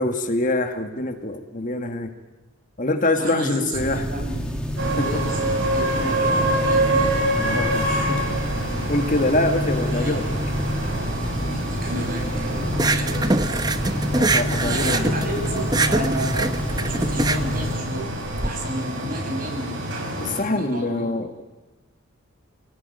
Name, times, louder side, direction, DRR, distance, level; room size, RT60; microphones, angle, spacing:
voice 1, 0.0-2.1 2.8-4.0 5.0-5.1 7.4-8.2 8.9-10.2 14.2-15.3 20.2-21.4, left 2 dB, 40° left, 6 dB, 1.7 m, -24 dB
voice 2, 3.1-4.4 4.9-7.2 7.5-8.1 9.9-10.2 11.5-13.2 14.6-18.1 18.4-19.8 20.1-21.1, right 1 dB, 45° right, 1 dB, 6.5 m, -32 dB
sound 1, 3.7-17.7, equal, 5° left, 2.4 m, -28 dB
sound 2, 4.8-20.4, right 1 dB, 60° right, 7.0 m, -27 dB
sound 3, 12.7-18.5, right 2 dB, 20° right, 0.9 m, -24 dB
27.0 x 17.5 x 9.4 m, 1.2 s
head